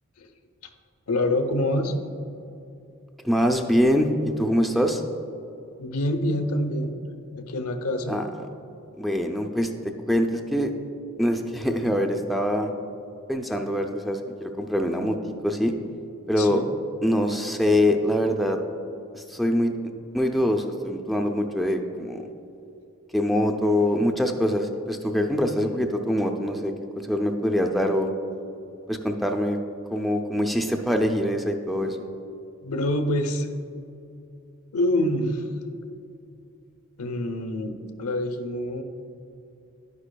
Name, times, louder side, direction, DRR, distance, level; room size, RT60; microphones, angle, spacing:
voice 1, 1.1-1.9 5.8-7.0 7.3-8.2 16.4-16.7 32.6-33.5 34.7-35.5 37.0-38.8, left 1 dB, 80° left, 6 dB, 0.7 m, -26 dB
voice 2, 3.2-5.0 8.1-8.3 9.0-10.7 11.2-12.7 13.3-15.2 15.4-15.7 16.3-16.6 17.0-18.6 19.1-19.7 20.1-22.2 23.1-28.1 28.9-29.6 29.9-32.0, equal, ahead, 3 dB, 0.4 m, -24 dB
11.0 x 9.8 x 2.2 m, 2.7 s
head